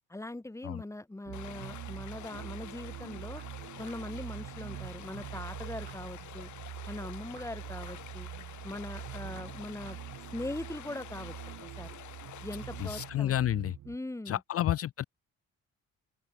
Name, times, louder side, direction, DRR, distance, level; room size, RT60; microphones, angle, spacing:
voice 1, 0.1-3.4 3.8-6.5 6.9-8.3 8.6-10.0 10.3-11.4 11.6-12.0 12.4-13.3 13.9-14.4, left 2 dB, 10° left, 1.8 m, -41 dB
sound 1, 1.2-14.0, right 13 dB, 80° right, 2.4 m, -44 dB
Stream, 1.3-13.1, left 12 dB, 70° left, 1.8 m, -48 dB
sound 2, 3.4-5.0 5.4-7.0 7.4-9.0 9.4-11.0, right 6 dB, 40° right, 2.7 m, -59 dB
voice 2, 12.8-13.7 14.3-15.0, left 12 dB, 50° left, 0.5 m, -30 dB
open air
cardioid pair, 90°, 30 cm